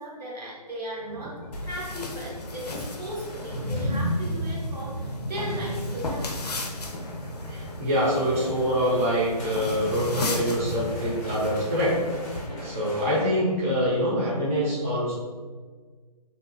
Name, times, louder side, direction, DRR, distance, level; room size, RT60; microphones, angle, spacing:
voice 1, 0.0-6.3 11.3-11.4 12.4-12.8, equal, 90° right, -4 dB, 1.1 m, -37 dB
sound 1, 0.9-13.2, equal, 20° left, 0.6 m, -35 dB
sound 2, 1.5-12.5, left 2 dB, 75° left, 0.5 m, -37 dB
voice 2, 7.5-12.0 12.2-12.4 12.6-15.1, equal, 20° right, -7 dB, 0.6 m, -25 dB
2.7 x 2.3 x 2.6 m, 1.5 s
figure-of-eight pair, 155°, 20 cm